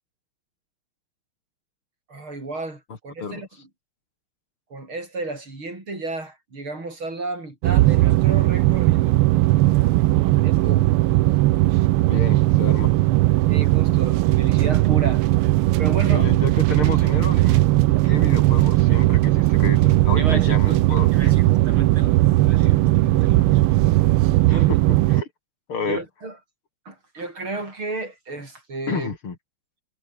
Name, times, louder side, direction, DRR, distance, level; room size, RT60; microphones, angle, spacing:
voice 1, 2.1-3.7 4.7-9.2 10.4-11.0 13.5-15.2 15.8-16.3 20.2-23.8 24.5-24.7 25.9-26.4 26.9-29.1, right 2 dB, 70° right, 8.0 m, -33 dB
sound 1, 7.6-25.2, right 17 dB, 85° right, 1.5 m, -18 dB
voice 2, 12.1-12.9 16.1-17.6 18.0-21.3 24.5-24.6 25.1-25.3 25.7-26.0 28.9-29.4, left 5 dB, 75° left, 4.0 m, -31 dB
omnidirectional pair, 2.4 m